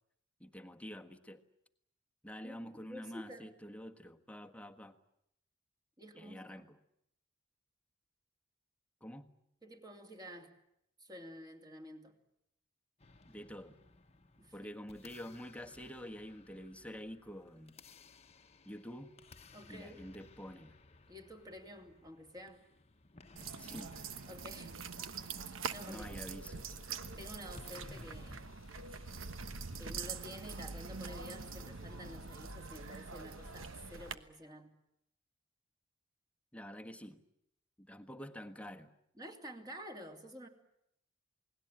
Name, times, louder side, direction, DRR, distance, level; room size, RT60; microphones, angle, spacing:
voice 1, 0.4-1.4 2.2-5.0 6.1-6.8 9.0-9.3 13.3-13.8 14.5-17.8 18.6-19.1 19.7-20.8 23.6-24.0 25.8-26.7 36.5-37.2 37.8-38.9, equal, 5° left, 5 dB, 1.5 m, -48 dB
voice 2, 2.4-3.5 6.0-6.7 9.6-10.5 11.0-12.1 14.4-14.7 19.5-20.0 21.1-22.6 24.3-24.8 25.3-26.1 27.2-28.5 29.8-34.7 39.2-40.5, equal, 20° right, 4 dB, 2.9 m, -50 dB
sound 1, 13.0-28.4, left 2 dB, 30° left, 1.2 m, -59 dB
sound 2, 23.4-34.1, right 5 dB, 75° right, 1.2 m, -44 dB
Long Psycho Horror Transition, 24.9-34.4, left 2 dB, 75° left, 1.2 m, -57 dB
28.5 x 20.0 x 8.9 m, 0.77 s
head